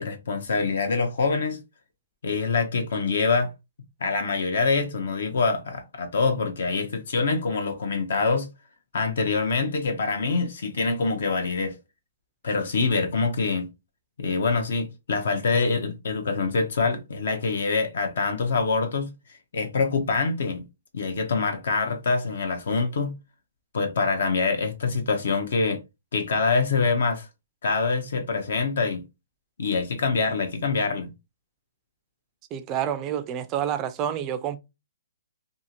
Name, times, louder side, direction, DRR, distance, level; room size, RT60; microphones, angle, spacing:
voice 1, 0.0-1.6 2.2-3.5 4.0-8.5 8.9-11.7 12.4-13.7 14.2-20.6 20.9-23.1 23.7-25.8 26.1-27.3 27.6-29.0 29.6-31.1, left 4 dB, 65° left, 0.6 m, -25 dB
voice 2, 32.5-34.6, right 10 dB, 20° right, 0.3 m, -28 dB
2.6 x 2.4 x 2.8 m
hypercardioid pair, 160°, 0 cm